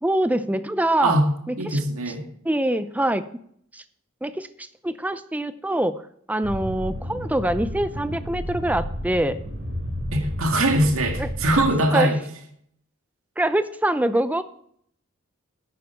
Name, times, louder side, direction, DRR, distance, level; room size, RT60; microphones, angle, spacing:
voice 1, 0.0-1.1 1.5-1.8 2.4-3.2 3.7-3.8 4.2-6.0 6.3-9.4 11.2-11.3 11.9-12.1 13.4-14.4, right 1 dB, 5° right, 12 dB, 0.4 m, -24 dB
voice 2, 1.6-2.3 10.1-12.2, right 1 dB, 65° right, 4 dB, 1.9 m, -21 dB
sound 1, 6.4-11.7, equal, 40° right, 3.0 m, -31 dB
10.5 x 9.0 x 4.5 m, 0.67 s
head